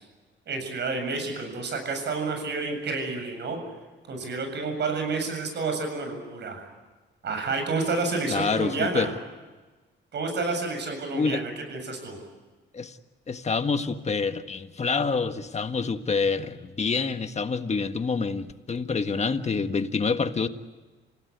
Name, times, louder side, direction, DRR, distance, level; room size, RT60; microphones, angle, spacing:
voice 1, 0.5-3.6 4.1-6.7 7.2-9.1 10.1-12.2, right 3 dB, 60° right, 7.5 m, -29 dB
voice 2, 8.3-9.1 11.1-11.4 12.7-13.0 13.3-20.5, left 4 dB, 35° left, 1.6 m, -27 dB
28.0 x 17.0 x 9.6 m
cardioid pair, 90°, 20 cm